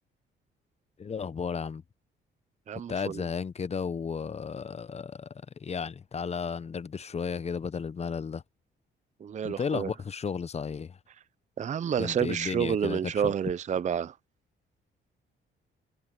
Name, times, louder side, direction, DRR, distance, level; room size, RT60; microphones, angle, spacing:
voice 1, 1.0-1.8 2.9-8.4 9.4-11.0 12.0-13.3, left 6 dB, 30° left, 0.7 m, -34 dB
voice 2, 2.7-3.2 9.2-9.9 11.6-14.1, right 8 dB, 35° right, 0.5 m, -29 dB
cardioid pair, 90°, 20 cm